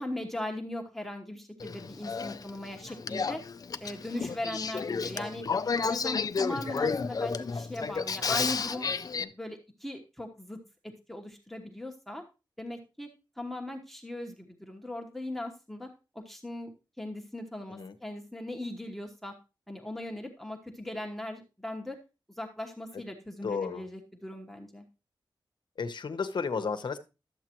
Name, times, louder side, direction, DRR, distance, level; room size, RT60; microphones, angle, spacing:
voice 1, 0.0-3.4 3.8-5.4 5.8-8.9 9.3-10.6 10.8-12.2 12.6-13.1 13.4-15.9 16.3-16.7 17.0-19.3 19.7-22.0 22.4-24.8, left 1 dB, ahead, 4 dB, 1.2 m, -39 dB
Male speech man speaking / Female speech woman speaking / Conversation, 1.6-9.2, left 5 dB, 45° left, 0.4 m, -32 dB
voice 2, 23.4-23.8 25.8-27.0, left 5 dB, 65° left, 9 dB, 0.9 m, -33 dB
12.0 x 7.4 x 3.0 m, 0.29 s
wide cardioid pair, 95°, 8 cm